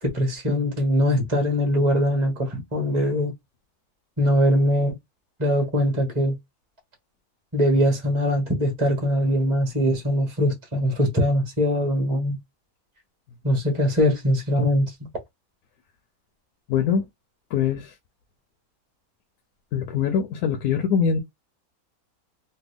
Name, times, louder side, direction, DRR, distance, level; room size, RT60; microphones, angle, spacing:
voice 1, 0.0-3.3 4.2-4.9 5.4-6.3 7.5-12.4 13.4-14.9, equal, 20° right, 1.3 m, -22 dB
voice 2, 16.7-17.0 17.5-17.9 19.7-21.2, left 7 dB, 85° left, 1.1 m, -23 dB
3.3 x 2.2 x 3.5 m
omnidirectional pair, 1.5 m